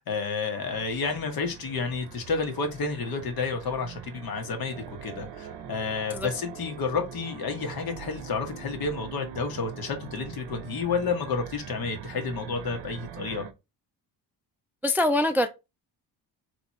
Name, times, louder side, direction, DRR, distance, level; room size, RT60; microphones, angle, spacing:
voice 1, 0.0-13.5, left 4 dB, 60° left, 1.3 m, -30 dB
sound 1, 0.6-13.5, right 9 dB, 80° right, 0.8 m, -43 dB
voice 2, 14.8-15.5, left 1 dB, 5° right, 0.3 m, -23 dB
3.4 x 3.0 x 4.2 m
cardioid pair, 95°, 40 cm